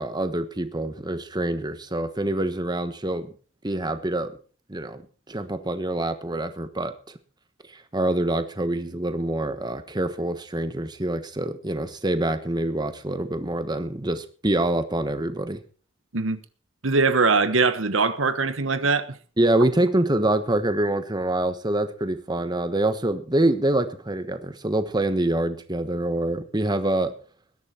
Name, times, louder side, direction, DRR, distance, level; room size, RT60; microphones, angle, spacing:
voice 1, 0.0-3.3 3.6-4.3 4.7-5.0 5.3-7.2 7.7-15.6 19.4-27.1, right 1 dB, 20° right, 1.3 m, -25 dB
voice 2, 16.8-19.2, right 4 dB, 80° right, 1.3 m, -22 dB
20.0 x 11.0 x 4.5 m
head